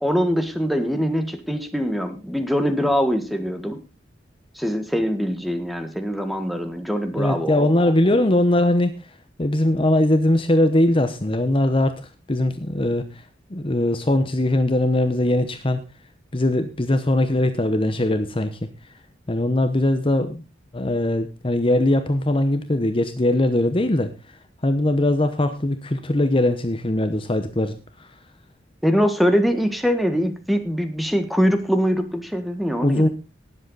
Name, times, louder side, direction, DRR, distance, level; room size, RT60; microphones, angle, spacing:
voice 1, 0.0-3.8 4.5-8.2 28.8-33.1, equal, ahead, 7 dB, 1.6 m, -23 dB
voice 2, 7.1-9.0 9.4-12.0 12.3-13.2 13.5-15.8 16.3-18.6 19.3-20.4 20.7-24.1 24.6-28.1 32.8-33.1, left 1 dB, 30° left, 8 dB, 1.0 m, -20 dB
18.5 x 7.8 x 4.1 m, 0.30 s
head